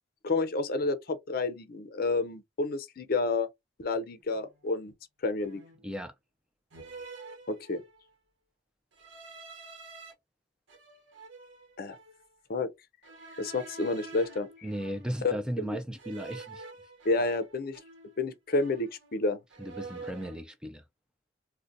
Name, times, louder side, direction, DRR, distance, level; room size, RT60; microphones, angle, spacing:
voice 1, 0.2-3.5 3.8-4.9 5.2-5.6 7.5-7.8 11.8-12.0 12.5-12.7 13.4-14.5 15.2-15.3 15.6-15.8 17.0-17.8 18.2-19.4, left 3 dB, 50° left, 0.5 m, -30 dB
sound 1, 4.3-4.5 5.4-5.9 6.7-8.1 8.9-10.1 10.7-12.2 13.0-15.4 16.0-18.2 18.5-19.2 19.5-20.4, right 3 dB, 75° right, 0.9 m, -48 dB
voice 2, 14.6-16.6 19.6-20.8, equal, 5° right, 0.3 m, -36 dB
3.8 x 2.1 x 2.6 m
head